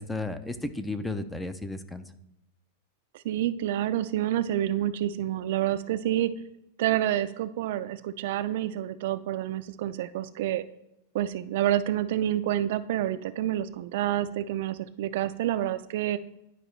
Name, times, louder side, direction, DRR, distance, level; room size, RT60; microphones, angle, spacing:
voice 1, 0.0-2.0, left 2 dB, 5° left, 10 dB, 0.5 m, -33 dB
voice 2, 3.1-6.3 6.8-10.7 11.1-16.2, right 12 dB, 65° right, 12 dB, 0.4 m, -28 dB
11.0 x 5.0 x 3.2 m, 0.83 s
supercardioid pair, 145°, 0 cm